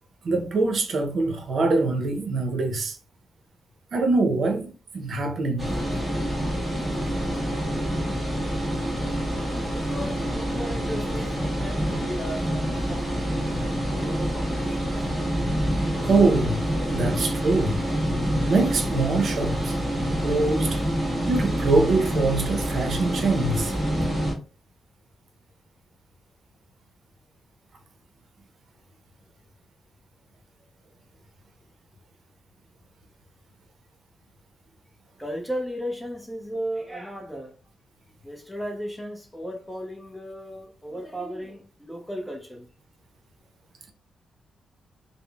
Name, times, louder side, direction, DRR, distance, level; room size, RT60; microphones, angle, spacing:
voice 1, 0.2-3.0 3.9-5.7 16.0-17.8 18.5-19.8 20.2-20.8 21.3-23.7, right 3 dB, 60° right, 0.6 m, -24 dB
sound 1, 5.6-24.3, equal, 10° right, 1.4 m, -27 dB
voice 2, 9.6-15.1 35.2-37.6 38.2-42.7, equal, 5° left, 0.7 m, -35 dB
3.5 x 2.0 x 2.3 m
cardioid pair, 95°, 0 cm